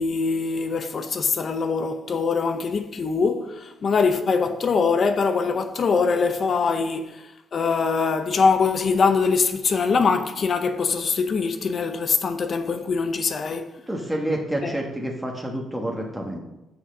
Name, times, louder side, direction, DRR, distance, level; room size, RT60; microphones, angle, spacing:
voice 1, 0.0-13.7 14.6-14.7, left 5 dB, 50° left, 0.6 m, -23 dB
voice 2, 13.9-16.4, right 1 dB, 5° right, 1.3 m, -28 dB
6.2 x 6.0 x 6.5 m
cardioid pair, 90°, 0 cm